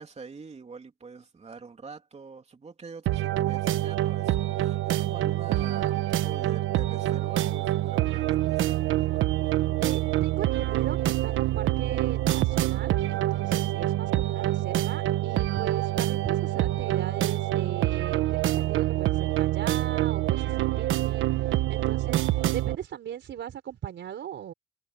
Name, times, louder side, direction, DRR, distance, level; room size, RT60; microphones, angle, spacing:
voice 1, 0.0-9.3, right 4 dB, 35° right, 3.2 m, -45 dB
sound 1, 3.1-22.8, right 14 dB, 85° right, 1.2 m, -26 dB
sound 2, 7.2-13.5, left 12 dB, 80° left, 7.8 m, -59 dB
voice 2, 9.8-24.5, right 9 dB, 65° right, 4.4 m, -38 dB
cardioid pair, 90°, 20 cm